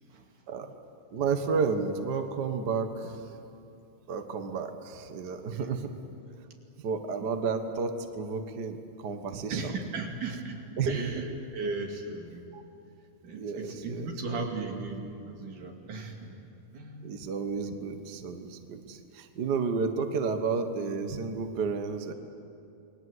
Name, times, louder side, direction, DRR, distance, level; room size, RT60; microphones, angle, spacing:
voice 1, 1.1-3.2 4.1-5.9 6.8-9.6 10.8-11.1 12.5-12.6 13.3-14.1 17.0-22.1, right 5 dB, 50° right, 7 dB, 1.3 m, -31 dB
voice 2, 5.5-5.9 9.5-12.4 13.2-16.3 16.7-17.1, right 3 dB, 75° right, 1 dB, 4.0 m, -36 dB
28.5 x 21.0 x 8.0 m, 2.7 s
omnidirectional pair, 3.6 m